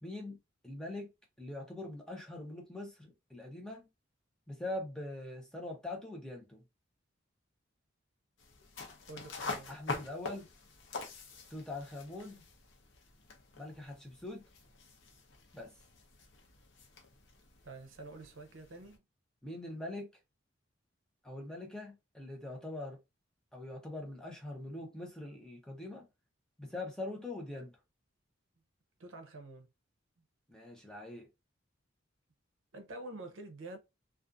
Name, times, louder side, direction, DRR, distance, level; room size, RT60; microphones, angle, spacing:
voice 1, 0.0-0.4 0.6-1.1 1.4-3.9 4.5-6.6 9.7-10.5 11.5-12.4 13.6-14.5 15.5-15.7 19.4-20.1 21.2-23.0 23.5-26.1 26.6-27.7 30.5-31.3, left 2 dB, 5° left, 0.6 m, -43 dB
sound 1, 8.4-19.0, left 4 dB, 65° left, 0.7 m, -46 dB
voice 2, 9.1-9.7 17.6-19.0 29.0-29.7 32.7-33.8, right 2 dB, 75° right, 0.6 m, -47 dB
2.4 x 2.3 x 2.5 m
head